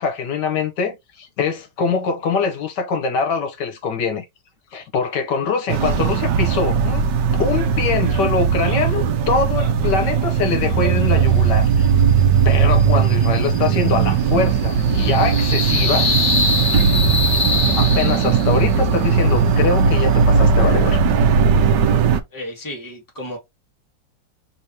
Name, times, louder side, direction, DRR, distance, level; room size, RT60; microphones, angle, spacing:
voice 1, 0.0-4.2 4.7-7.0 7.4-11.9 12.4-16.1 17.8-21.2, left 5 dB, 75° left, 1.4 m, -23 dB
sound 1, 5.7-22.2, right 6 dB, 75° right, 1.3 m, -18 dB
sound 2, 12.7-18.7, left 3 dB, 35° left, 0.8 m, -24 dB
voice 2, 22.3-23.4, left 1 dB, 10° left, 1.6 m, -32 dB
4.7 x 3.6 x 2.8 m
omnidirectional pair, 1.9 m